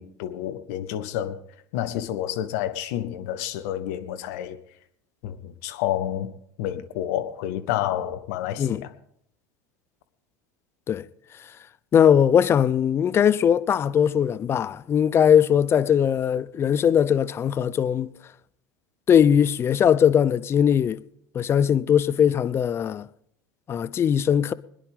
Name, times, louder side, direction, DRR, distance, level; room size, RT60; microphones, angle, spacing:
voice 1, 0.0-1.4 1.7-4.6 5.2-6.3 6.6-8.9, left 12 dB, 55° left, 1.0 m, -29 dB
voice 2, 11.9-18.1 19.1-21.0 21.3-23.1 23.7-24.5, left 8 dB, 25° left, 0.5 m, -20 dB
25.0 x 10.0 x 3.5 m
figure-of-eight pair, 75°, 9 cm